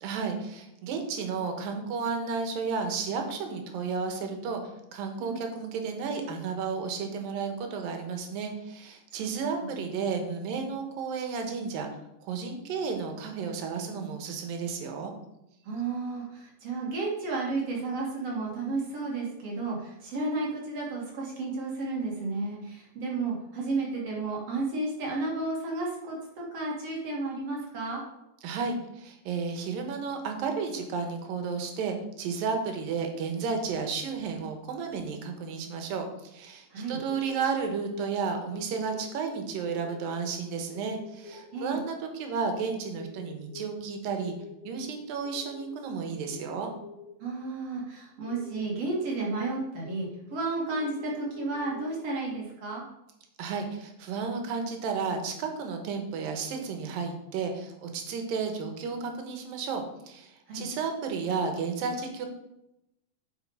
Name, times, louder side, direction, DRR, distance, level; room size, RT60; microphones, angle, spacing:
voice 1, 0.0-11.9 12.2-15.1 28.4-44.4 44.6-46.7 53.4-62.3, right 5 dB, 85° right, 5 dB, 2.9 m, -32 dB
voice 2, 15.6-28.0 36.7-37.0 41.5-41.8 47.2-52.8 60.5-60.7, right 3 dB, 50° right, -3 dB, 2.9 m, -32 dB
sound 1, 36.7-38.2 38.5-39.2 39.5-40.2 40.7-41.7 42.9-44.9 45.2-45.8 46.2-47.2 48.3-49.5 49.8-50.4 50.7-51.9, left 4 dB, 35° left, 1.6 m, -46 dB
8.1 x 6.4 x 4.8 m, 0.86 s
omnidirectional pair, 3.9 m